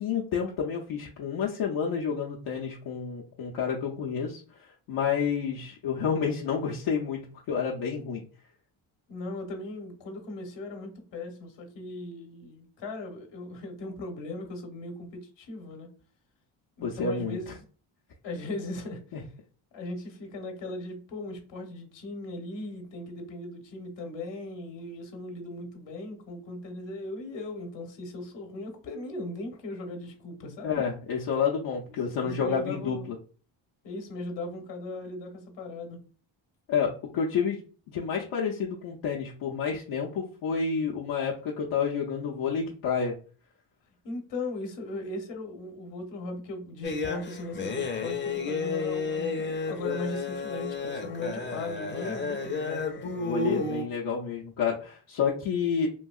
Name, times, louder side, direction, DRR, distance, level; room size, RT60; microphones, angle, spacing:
voice 1, 0.0-8.3 16.8-17.5 19.1-19.2 30.6-33.0 36.7-37.6 37.9-43.1 53.2-55.9, left 6 dB, 80° left, -3 dB, 0.7 m, -29 dB
voice 2, 9.1-15.9 16.8-17.6 18.2-19.2 19.7-30.8 31.9-33.1 33.8-36.0 44.0-52.8, left 2 dB, 60° left, 4 dB, 1.0 m, -38 dB
sound 1, 46.8-53.8, left 4 dB, 25° left, 0.6 m, -32 dB
3.0 x 2.7 x 2.3 m, 0.39 s
cardioid pair, 75°, 48 cm